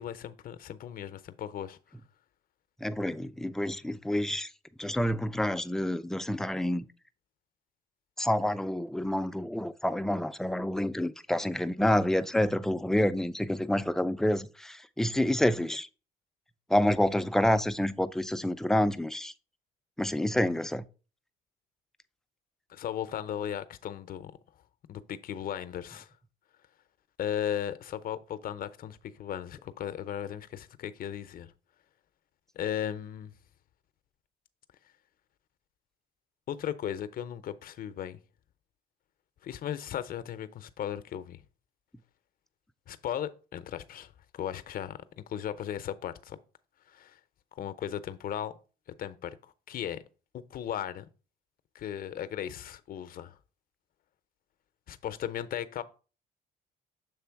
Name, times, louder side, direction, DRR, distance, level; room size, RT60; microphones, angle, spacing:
voice 1, 0.0-1.8 22.7-24.3 24.9-26.1 27.2-31.5 32.5-33.3 36.5-38.2 39.4-41.4 42.9-46.4 46.9-47.2 47.6-48.5 49.0-49.4 49.7-50.0 50.3-51.1 51.7-53.4 54.9-55.8, left 10 dB, 55° left, 0.6 m, -36 dB
voice 2, 2.8-4.5 4.8-6.9 8.2-15.9 16.7-19.3 20.0-20.9, left 1 dB, 5° left, 0.4 m, -28 dB
6.9 x 3.3 x 4.5 m
cardioid pair, 85°, 17 cm